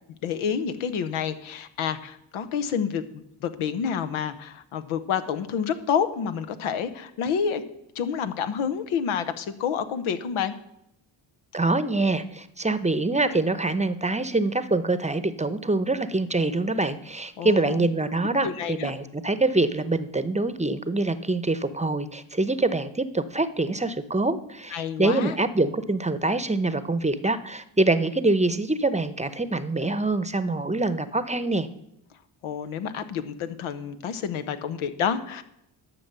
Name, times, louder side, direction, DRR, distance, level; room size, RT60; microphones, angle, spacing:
voice 1, 0.2-7.6 7.9-10.5 17.4-17.8 18.4-18.9 24.7-25.4 32.4-35.4, left 7 dB, 90° left, 11 dB, 1.0 m, -28 dB
voice 2, 11.5-31.7, right 2 dB, 15° right, 13 dB, 0.8 m, -25 dB
11.5 x 6.2 x 6.7 m, 0.82 s
cardioid pair, 65°, 48 cm